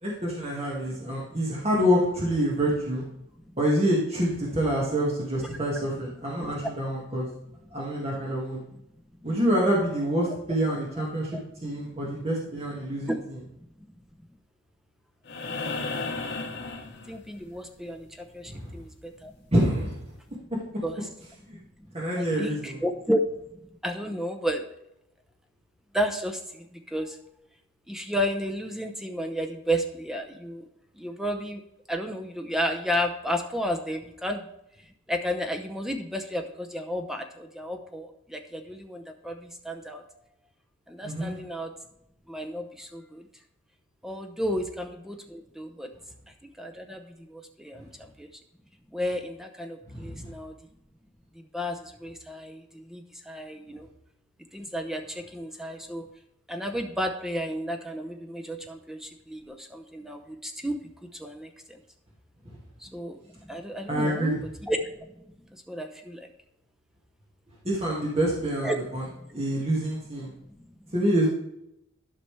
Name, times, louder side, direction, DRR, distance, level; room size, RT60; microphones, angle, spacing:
voice 1, 0.0-3.0 3.6-7.3 7.7-8.6 9.2-11.3 11.6-13.2 18.5-18.8 19.5-20.0 20.5-20.6 21.5-21.6 21.9-22.8 41.0-41.3 49.9-50.3 62.5-62.6 63.9-64.4 67.6-69.0 69.3-70.3 70.9-71.3, equal, 30° right, -4 dB, 1.8 m, -26 dB
sound 1, 15.3-17.6 19.4-19.5, left 3 dB, 55° left, 1.2 m, -34 dB
voice 2, 17.1-18.1 18.3-19.3 20.8-21.0 21.8-23.2 23.8-24.6 25.9-27.2 27.9-30.7 30.9-31.6 31.9-34.5 35.1-40.0 40.9-41.7 42.3-43.3 44.0-45.9 46.4-48.3 48.9-50.5 51.5-53.9 54.5-56.1 56.5-60.8 61.0-61.8 62.8-64.4 64.6-64.9 65.5-66.3 68.6-68.8 70.5-70.6, equal, ahead, 4 dB, 0.7 m, -32 dB
11.5 x 5.9 x 3.3 m, 0.81 s
head